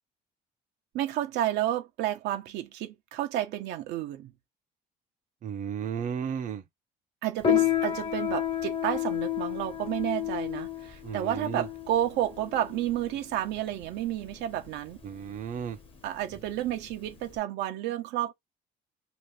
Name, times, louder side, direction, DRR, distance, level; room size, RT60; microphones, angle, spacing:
voice 1, 0.9-4.3 7.2-15.0 16.0-18.3, right 12 dB, 85° right, 0.8 m, -31 dB
voice 2, 5.4-6.6 11.0-11.7 15.0-15.8, right 7 dB, 50° right, 0.7 m, -34 dB
Piano, 7.4-17.4, left 11 dB, 35° left, 1.2 m, -31 dB
2.9 x 2.5 x 3.2 m
cardioid pair, 110°, 17 cm